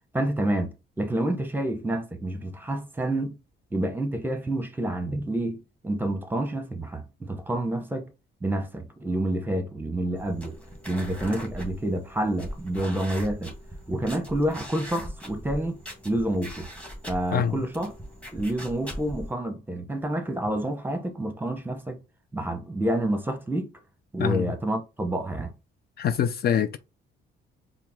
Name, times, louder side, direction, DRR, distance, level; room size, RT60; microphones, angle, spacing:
voice 1, 0.1-3.4 3.7-8.1 8.4-10.6 10.9-13.5 13.9-15.8 16.0-16.7 17.1-17.9 18.3-22.0 22.3-23.7 24.1-25.5, right 1 dB, 10° right, 0.9 m, -28 dB
sound 1, 10.1-19.3, equal, 5° left, 1.5 m, -40 dB
voice 2, 26.0-26.8, left 9 dB, 50° left, 0.4 m, -24 dB
4.4 x 2.0 x 3.7 m
cardioid pair, 90°, 20 cm